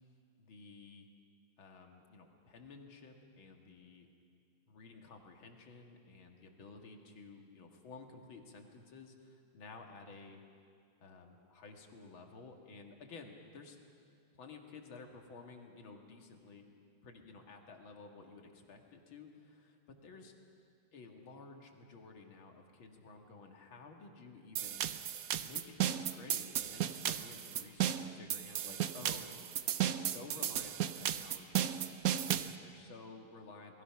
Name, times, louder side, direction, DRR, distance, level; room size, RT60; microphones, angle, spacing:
voice 1, 0.4-1.1 1.6-4.1 4.7-10.4 11.0-13.8 14.3-16.7 17.0-20.3 20.9-24.9 25.4-29.5 29.8-31.7 32.3-33.8, left 4 dB, 75° left, 3 dB, 2.7 m, -53 dB
sound 1, 24.6-32.5, right 10 dB, 65° right, 0.9 m, -35 dB
28.5 x 20.5 x 5.9 m, 2.3 s
omnidirectional pair, 2.2 m